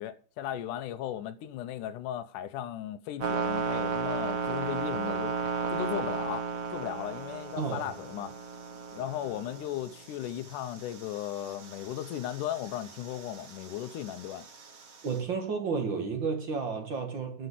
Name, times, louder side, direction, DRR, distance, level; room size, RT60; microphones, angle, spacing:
voice 1, 0.0-5.3 5.7-8.3 8.9-14.5, left 11 dB, 80° left, 2.2 m, -36 dB
sound 1, 3.2-15.2, right 5 dB, 90° right, 0.7 m, -35 dB
voice 2, 7.6-7.9 15.0-17.5, right 5 dB, 45° right, 1.8 m, -32 dB
12.0 x 5.5 x 8.2 m
omnidirectional pair, 3.8 m